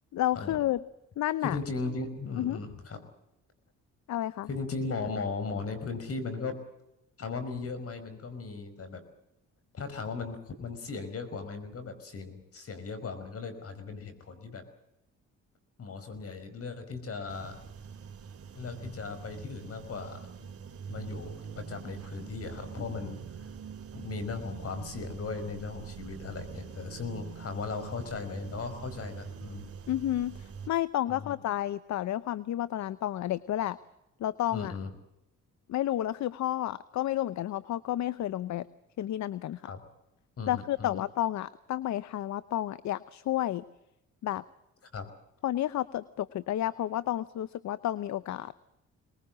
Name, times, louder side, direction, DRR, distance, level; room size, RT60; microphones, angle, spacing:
voice 1, 0.1-0.8 1.2-1.6 2.4-2.6 4.1-4.5 29.9-33.8 34.2-34.7 35.7-38.7 39.0-39.6 40.5-43.6 44.2-44.4 45.4-48.5, left 13 dB, 65° left, 17 dB, 0.8 m, -31 dB
voice 2, 1.4-3.0 4.5-6.6 7.2-9.0 9.7-14.6 15.8-17.6 18.5-20.3 20.9-23.5 23.9-29.7 31.1-31.3 34.5-34.9 39.6-39.8 40.4-41.0 44.9-45.1, left 4 dB, 50° left, 10 dB, 5.3 m, -37 dB
sound 1, 17.3-30.7, right 6 dB, 50° right, 3.0 m, -44 dB
23.5 x 21.0 x 7.6 m, 0.88 s
cardioid pair, 90°, 30 cm